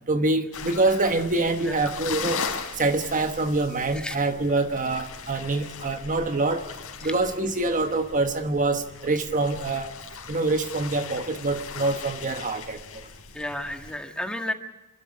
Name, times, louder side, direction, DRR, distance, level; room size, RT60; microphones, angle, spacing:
voice 1, 0.1-2.4 2.7-6.7 7.0-10.0 10.3-13.1, right 2 dB, 35° right, 1.3 m, -25 dB
sound 1, 0.5-14.0, left 5 dB, 75° left, 3.6 m, -38 dB
voice 2, 13.3-14.5, left 1 dB, 5° left, 1.6 m, -32 dB
26.5 x 12.5 x 9.7 m
head